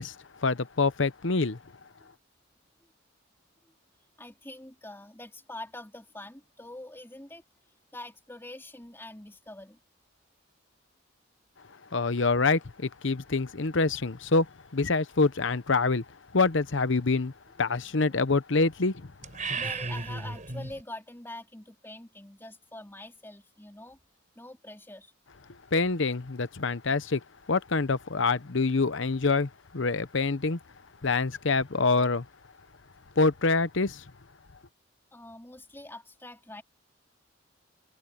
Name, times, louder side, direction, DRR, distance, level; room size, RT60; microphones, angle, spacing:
voice 1, 0.0-1.6 11.9-19.1 25.7-30.6 31.0-32.3 33.2-34.1, left 3 dB, 60° left, 0.9 m, -26 dB
voice 2, 4.2-7.4 7.9-9.8 17.9-18.1 19.5-24.0 24.4-25.1 35.1-36.6, left 1 dB, 10° left, 3.5 m, -45 dB
sound 1, 19.2-20.8, right 4 dB, 40° right, 4.2 m, -34 dB
head